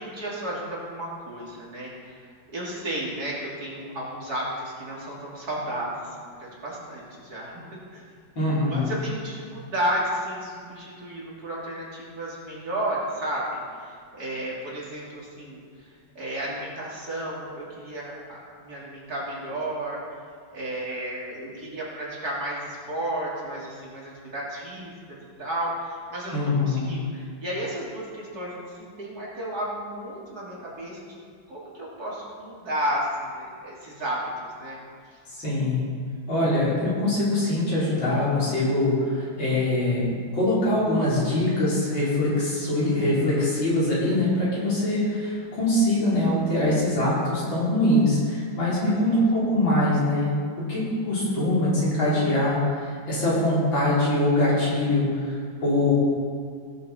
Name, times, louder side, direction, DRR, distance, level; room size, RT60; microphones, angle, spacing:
voice 1, 0.0-2.3 2.5-7.6 7.9-20.0 20.5-31.2 31.5-34.8 35.1-35.2 44.9-45.3 48.8-49.2, right 1 dB, 50° right, -6 dB, 3.3 m, -33 dB
voice 2, 8.4-8.9 26.3-26.9 35.4-35.8 36.3-40.1 40.3-50.3 50.7-52.6 53.1-55.0 55.6-55.9, left 1 dB, 80° left, -8 dB, 4.7 m, -23 dB
18.0 x 7.5 x 4.4 m, 2.1 s
omnidirectional pair, 2.1 m